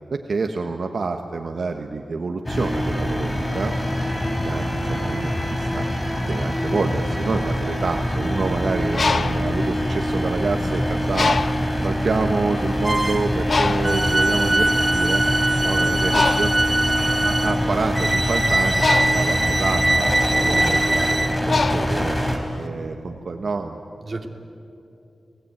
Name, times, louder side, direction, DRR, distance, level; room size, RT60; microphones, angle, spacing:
voice 1, 0.1-3.7 4.2-5.9 6.3-11.4 11.8-15.2 15.6-16.5 16.9-22.2 22.6-23.8, right 4 dB, 65° right, 5 dB, 1.3 m, -28 dB
sound 1, 2.5-22.4, equal, 20° left, 3.6 m, -24 dB
Bird, 8.7-10.6 11.1-11.8 12.5-12.6 12.9-22.6, left 4 dB, 55° left, 0.5 m, -26 dB
sound 2, 12.8-13.3 13.8-21.4, right 2 dB, 15° right, 1.1 m, -22 dB
voice 2, 16.7-17.1 24.0-24.3, right 3 dB, 40° right, 3 dB, 2.6 m, -35 dB
29.5 x 18.5 x 9.3 m, 2.7 s
wide cardioid pair, 100°, 0 cm